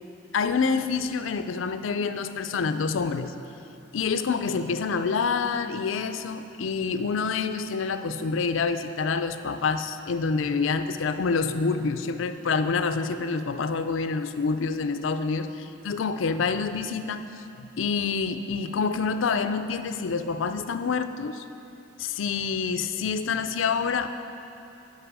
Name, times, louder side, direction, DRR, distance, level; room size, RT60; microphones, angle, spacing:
voice 1, 0.3-3.3 3.9-17.3 17.6-21.4 22.0-24.1, left 5 dB, 85° left, 10 dB, 0.5 m, -27 dB
11.5 x 5.5 x 6.1 m, 2.8 s
head